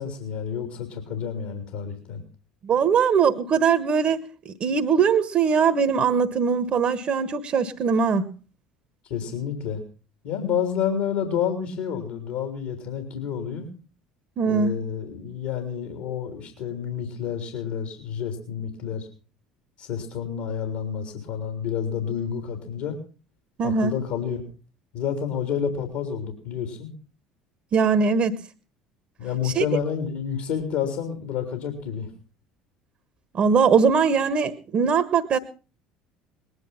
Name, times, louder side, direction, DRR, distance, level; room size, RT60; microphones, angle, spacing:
voice 1, 0.0-2.2 9.1-9.8 10.2-13.7 14.4-19.1 19.8-23.0 23.6-24.4 24.9-26.9 29.2-32.1, left 8 dB, 60° left, 5 dB, 3.7 m, -29 dB
voice 2, 2.6-8.3 14.4-14.7 23.6-24.0 27.7-28.4 29.4-29.6 33.3-35.4, right 6 dB, 40° right, 12 dB, 1.4 m, -21 dB
20.5 x 11.0 x 5.8 m, 0.37 s
figure-of-eight pair, 65°, 3 cm